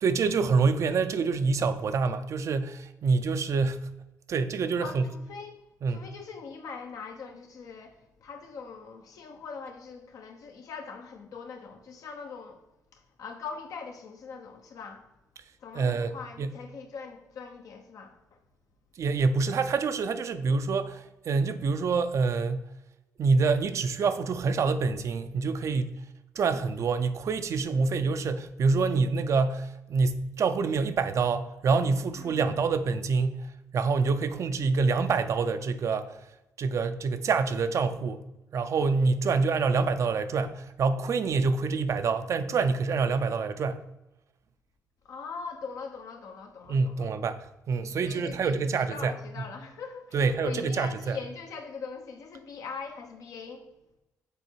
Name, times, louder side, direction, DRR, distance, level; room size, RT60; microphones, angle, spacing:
voice 1, 0.0-3.9 4.3-5.1 5.8-6.1 15.7-16.1 16.4-16.5 19.0-22.7 23.2-25.9 26.4-33.5 33.7-36.2 36.6-38.2 38.5-43.8 46.7-49.1 50.1-51.2, right 4 dB, 55° right, 0.5 m, -26 dB
voice 2, 4.8-12.6 12.9-15.1 15.6-18.4 32.2-32.4 45.0-47.1 48.0-53.7, left 5 dB, 70° left, 1.0 m, -42 dB
6.8 x 3.9 x 4.6 m
cardioid pair, 85°, 6 cm